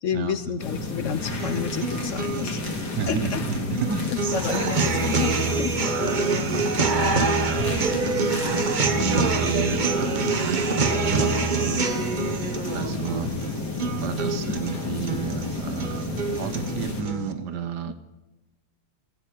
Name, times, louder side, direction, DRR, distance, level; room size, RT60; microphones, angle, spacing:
voice 1, 0.0-2.6 3.1-3.4 4.1-5.8 6.1-6.4 7.0-7.3 14.5-14.6 17.9-18.0, left 7 dB, 60° left, 12 dB, 0.9 m, -30 dB
sound 1, 0.6-17.0, left 3 dB, 80° left, 2.5 m, -31 dB
sound 2, 1.3-17.3, right 4 dB, 35° right, 0.9 m, -26 dB
voice 2, 3.0-4.1 4.5-4.7 6.1-8.0 9.0-11.9 12.2-12.3 12.7-13.3 14.0-17.9, right 7 dB, 80° right, 10 dB, 1.6 m, -32 dB
14.5 x 8.5 x 9.2 m, 1.1 s
omnidirectional pair, 1.8 m